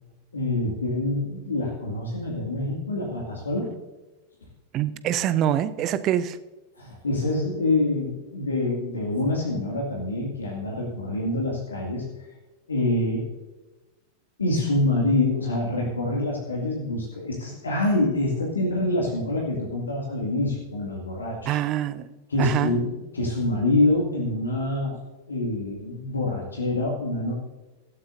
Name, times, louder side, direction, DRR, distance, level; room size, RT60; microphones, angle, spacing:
voice 1, 0.3-3.7 6.8-12.1 12.7-13.3 14.4-21.6 22.3-25.0 25.3-27.3, left 2 dB, 75° left, -1 dB, 2.2 m, -26 dB
voice 2, 4.7-6.4 21.5-22.1 22.4-22.8, right 11 dB, 35° right, 15 dB, 0.6 m, -25 dB
17.5 x 12.5 x 2.7 m, 1.1 s
figure-of-eight pair, 90°, 0 cm